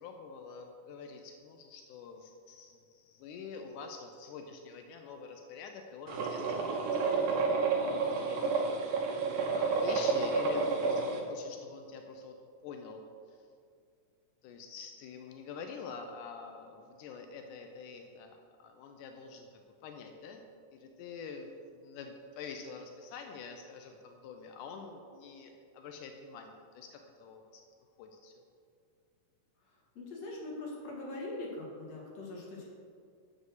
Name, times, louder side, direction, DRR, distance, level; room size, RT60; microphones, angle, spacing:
voice 1, 0.0-7.0 7.3-7.7 8.0-8.7 9.5-12.4 12.6-13.4 14.4-20.4 20.7-27.6 28.0-28.3, left 5 dB, 80° left, 4 dB, 2.1 m, -46 dB
sound 1, 6.1-11.2, right 4 dB, 85° right, 2.5 m, -30 dB
voice 2, 29.7-32.7, left 2 dB, 60° left, -2 dB, 2.5 m, -42 dB
7.4 x 6.3 x 6.4 m, 2.3 s
omnidirectional pair, 3.6 m